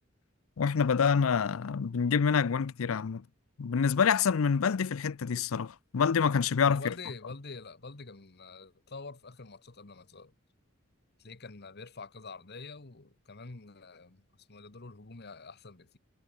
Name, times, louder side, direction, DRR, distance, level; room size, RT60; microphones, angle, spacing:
voice 1, 0.6-3.2 3.6-6.9, left 6 dB, 90° left, 0.5 m, -27 dB
voice 2, 6.7-10.3 11.2-16.0, left 3 dB, 55° left, 1.3 m, -46 dB
head